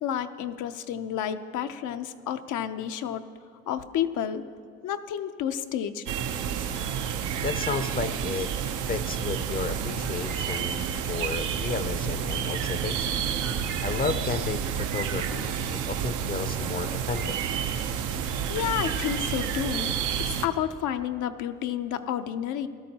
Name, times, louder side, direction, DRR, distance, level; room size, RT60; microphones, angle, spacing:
voice 1, 0.0-3.2 3.7-4.5 4.8-6.0 18.5-19.9 20.2-22.7, left 10 dB, 80° left, 9 dB, 0.6 m, -30 dB
sound 1, 6.1-20.5, right 8 dB, 90° right, 0.6 m, -30 dB
voice 2, 6.7-8.5 8.8-15.5 15.8-17.4, left 4 dB, 30° left, 10 dB, 0.5 m, -33 dB
16.5 x 13.0 x 2.8 m, 2.2 s
cardioid pair, 90°, 30 cm